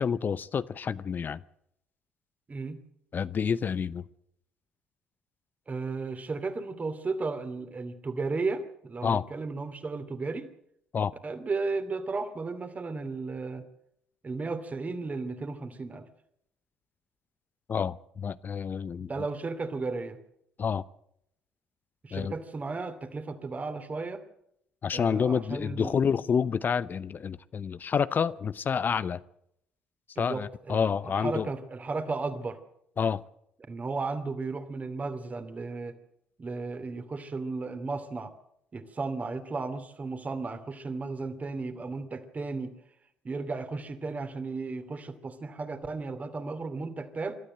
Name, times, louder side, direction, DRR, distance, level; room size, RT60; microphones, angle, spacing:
voice 1, 0.0-1.4 3.1-4.0 9.0-9.2 10.9-11.1 17.7-19.1 20.6-20.8 22.1-22.3 24.8-29.2 30.2-31.5 33.0-33.2, left 6 dB, 40° left, 17 dB, 0.7 m, -28 dB
voice 2, 2.5-2.8 5.7-10.5 11.2-13.6 14.2-16.1 19.0-20.2 22.0-24.2 24.9-26.0 30.2-32.6 33.7-36.0 36.4-38.3 38.7-42.7 43.2-47.4, right 3 dB, 30° right, 10 dB, 2.7 m, -34 dB
25.5 x 13.0 x 7.8 m, 0.76 s
hypercardioid pair, 50°, 5 cm